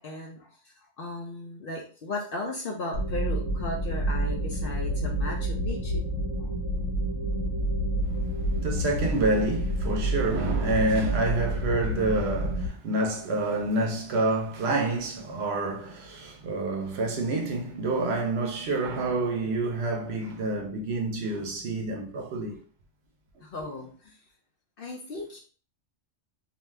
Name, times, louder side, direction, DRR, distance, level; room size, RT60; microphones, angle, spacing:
voice 1, 0.0-6.1 6.4-6.5 23.4-24.2 24.8-25.4, left 2 dB, 60° left, 0.6 m, -36 dB
sound 1, 2.9-12.7, right 1 dB, 85° left, 1.0 m, -29 dB
voice 2, 8.0-22.6, right 2 dB, 65° right, 0.8 m, -28 dB
2.6 x 2.3 x 3.2 m
omnidirectional pair, 1.3 m